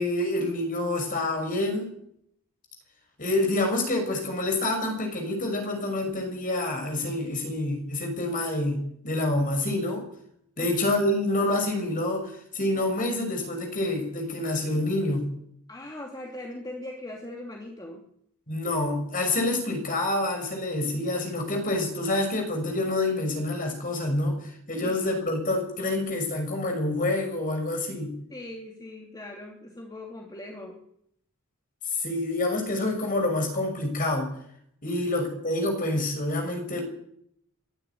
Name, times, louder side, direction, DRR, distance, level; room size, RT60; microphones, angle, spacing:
voice 1, 0.0-1.9 3.2-10.0 10.6-15.3 18.5-28.1 31.9-34.3 34.8-36.8, left 2 dB, 40° left, 4 dB, 6.2 m, -27 dB
voice 2, 15.7-18.0 24.8-24.9 28.3-30.8 34.9-35.0, left 1 dB, 20° left, 0 dB, 2.8 m, -40 dB
23.5 x 12.0 x 9.6 m, 0.72 s
head